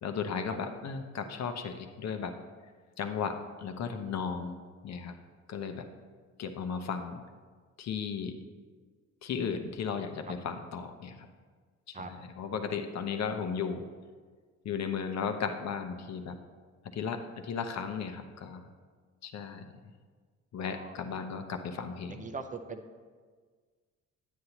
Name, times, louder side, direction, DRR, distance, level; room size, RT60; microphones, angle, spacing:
voice 1, 0.0-2.3 3.0-4.6 4.8-5.2 5.5-5.8 6.4-7.2 7.8-8.3 9.2-11.2 11.9-13.8 14.6-16.3 16.9-18.6 19.2-19.6 20.5-22.3, left 6 dB, 60° left, 6 dB, 0.8 m, -35 dB
voice 2, 22.1-23.0, right 4 dB, 25° right, 6 dB, 0.6 m, -41 dB
9.3 x 8.0 x 2.9 m, 1.5 s
cardioid pair, 90°, 30 cm